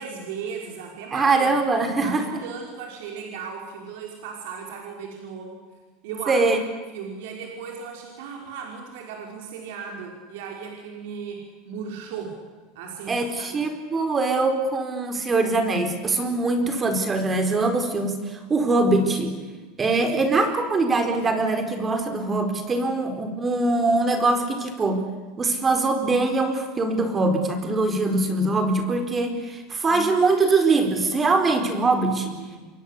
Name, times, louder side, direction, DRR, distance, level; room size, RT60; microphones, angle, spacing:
voice 1, 0.0-1.4 1.8-5.6 6.0-6.4 6.9-12.4 12.7-13.6 29.8-30.2 32.1-32.6, right 6 dB, 75° right, 0 dB, 5.7 m, -36 dB
voice 2, 1.1-2.3 6.3-6.6 13.1-19.3 19.8-25.0 25.4-32.3, right 3 dB, 20° right, 6 dB, 4.3 m, -22 dB
28.0 x 23.0 x 8.5 m, 1.3 s
supercardioid pair, 140°, 0 cm